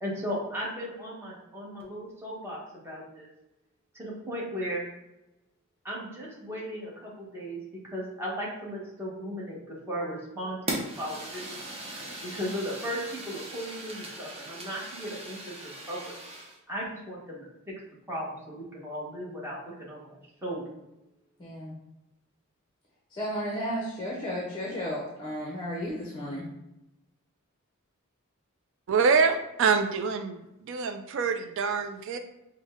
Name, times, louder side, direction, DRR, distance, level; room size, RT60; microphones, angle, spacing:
voice 1, 0.0-3.3 3.9-4.9 5.8-7.6 7.9-11.6 11.9-16.1 16.7-17.5 18.1-20.2 20.4-20.7, equal, 10° right, -6 dB, 1.1 m, -36 dB
Fire, 10.7-16.6, right 1 dB, 25° right, 0.7 m, -39 dB
voice 2, 21.4-21.7 23.1-26.4, equal, 20° left, -3 dB, 0.7 m, -33 dB
voice 3, 28.9-30.4 30.7-32.2, right 5 dB, 60° right, 7 dB, 0.3 m, -25 dB
5.2 x 2.1 x 3.5 m, 0.93 s
head